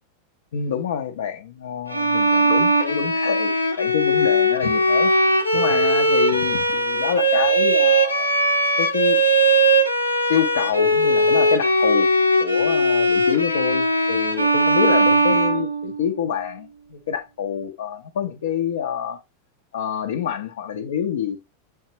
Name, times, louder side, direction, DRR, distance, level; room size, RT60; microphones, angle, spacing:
voice 1, 0.5-3.5 3.8-5.1 5.5-8.3 8.8-9.2 10.3-12.1 12.4-19.2 19.7-21.4, left 8 dB, 60° left, 0.7 m, -26 dB
Bowed string instrument, 1.9-16.2, right 1 dB, 90° left, 1.0 m, -19 dB
7.2 x 4.7 x 2.8 m
figure-of-eight pair, 90°, 0 cm